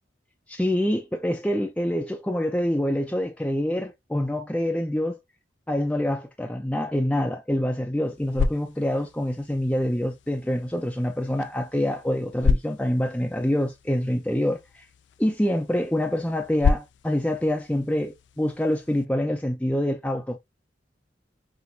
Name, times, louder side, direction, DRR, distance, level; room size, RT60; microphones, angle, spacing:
voice 1, 0.5-5.2 5.7-14.8 15.2-20.4, left 1 dB, 5° left, 0.5 m, -26 dB
sound 1, 8.0-19.1, left 4 dB, 75° left, 0.4 m, -32 dB
5.9 x 2.6 x 2.7 m
head